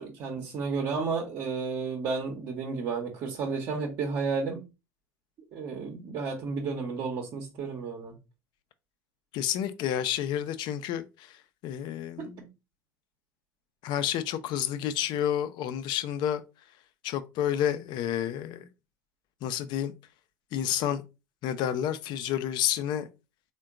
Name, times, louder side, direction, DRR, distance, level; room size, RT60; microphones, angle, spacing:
voice 1, 0.0-4.6 5.5-8.1 12.2-12.5, right 4 dB, 50° right, 0.9 m, -32 dB
voice 2, 9.3-11.4 11.6-12.4 13.8-16.4 17.0-18.7 19.4-19.9 20.5-21.0 21.4-23.1, left 10 dB, 55° left, 0.5 m, -30 dB
3.6 x 2.2 x 3.5 m
hypercardioid pair, 75°, 9 cm